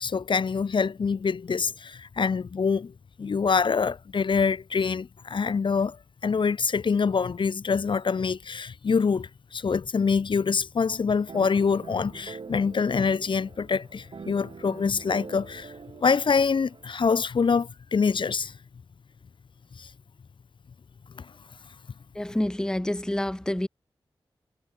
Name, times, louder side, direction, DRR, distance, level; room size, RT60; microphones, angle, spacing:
voice 1, 0.0-2.9 3.2-6.0 6.2-15.7 16.0-18.5 19.8-19.9 21.2-21.3, left 5 dB, 60° left, 0.6 m, -25 dB
sound 1, 11.3-16.9, right 5 dB, 60° right, 0.9 m, -44 dB
voice 2, 22.2-23.7, left 1 dB, 5° left, 0.6 m, -28 dB
cardioid pair, 45°, 10 cm